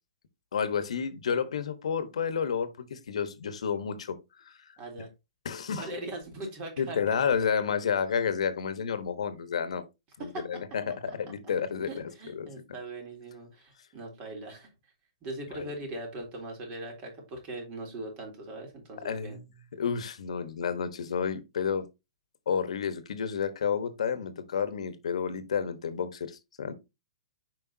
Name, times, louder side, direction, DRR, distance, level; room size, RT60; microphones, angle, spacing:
voice 1, 0.5-4.2 4.4-4.6 5.4-5.9 6.8-9.8 10.2-12.6 15.5-15.7 19.0-19.4 19.8-21.9 22.5-26.7, left 6 dB, 75° left, 1.2 m, -31 dB
voice 2, 4.8-5.1 5.8-7.2 10.3-10.6 11.1-11.2 11.9-14.7 15.2-19.4, right 2 dB, 35° right, 3.5 m, -40 dB
7.4 x 5.3 x 2.7 m
hypercardioid pair, 135°, 3 cm